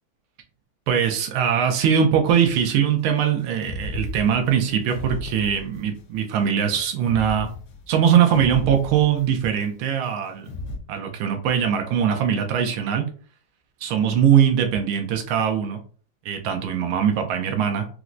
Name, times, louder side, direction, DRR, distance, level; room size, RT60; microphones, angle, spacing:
voice 1, 0.9-7.5 7.9-10.5 10.9-13.1 13.8-15.8 16.2-17.9, right 8 dB, 85° right, 4 dB, 1.5 m, -21 dB
sound 1, 3.5-6.1 7.0-9.4 10.4-10.8, left 2 dB, 85° left, 0.8 m, -35 dB
4.4 x 2.0 x 2.5 m, 0.41 s
omnidirectional pair, 2.3 m